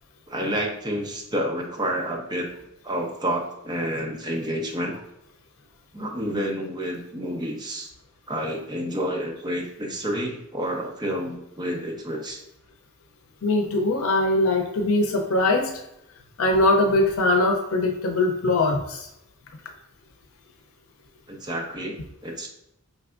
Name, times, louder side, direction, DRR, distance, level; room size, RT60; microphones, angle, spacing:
voice 1, 0.3-2.5 2.8-5.0 5.9-7.9 8.3-12.4 21.3-22.0 22.2-22.5, equal, 20° right, 0 dB, 0.8 m, -29 dB
voice 2, 13.4-15.8 16.4-19.1, left 2 dB, 85° left, 3 dB, 0.5 m, -21 dB
5.4 x 3.4 x 2.4 m, 0.83 s
head